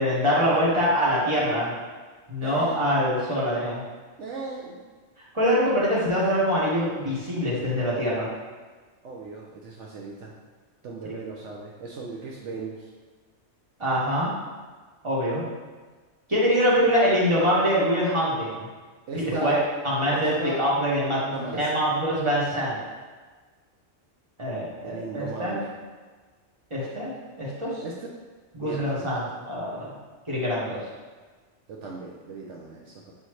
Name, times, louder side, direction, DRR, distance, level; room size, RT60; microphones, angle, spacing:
voice 1, 0.0-1.7 2.3-3.8 5.3-8.3 13.8-14.3 15.0-15.4 16.3-18.6 19.1-19.6 19.8-22.8 24.4-25.6 26.7-27.1 27.4-27.7 28.5-29.9 30.3-30.8, equal, 25° right, -8 dB, 1.7 m, -24 dB
voice 2, 2.4-2.9 4.2-4.9 9.0-10.3 10.8-12.9 19.1-19.6 20.1-20.6 21.3-21.8 24.8-25.7 27.8-28.1 28.6-29.1 31.7-33.1, right 3 dB, 75° right, -2 dB, 1.0 m, -37 dB
7.6 x 4.1 x 3.1 m, 1.4 s
omnidirectional pair, 1.3 m